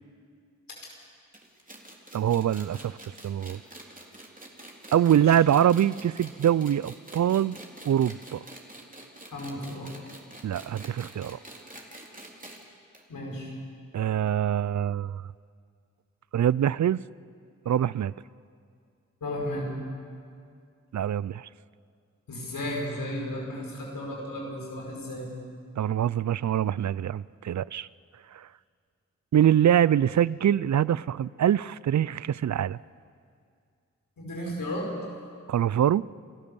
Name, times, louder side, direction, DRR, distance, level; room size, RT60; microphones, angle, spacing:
sound 1, 1.3-12.6 12.9-13.0 13.3-13.4 14.3-14.4, right 1 dB, 25° right, 3.4 m, -46 dB
voice 1, 2.1-3.0 3.2-3.6 4.9-7.6 7.8-8.4 10.4-11.4 13.9-15.2 16.3-17.0 17.7-18.1 20.9-21.5 25.8-27.9 28.3-28.5 29.3-32.8 35.5-36.1, right 10 dB, 60° right, 0.4 m, -24 dB
voice 2, 9.3-10.0 13.1-13.5 19.2-19.7 22.3-25.3 34.2-34.9, left 1 dB, 90° left, 5.0 m, -34 dB
29.0 x 13.0 x 7.1 m
cardioid pair, 40°, 32 cm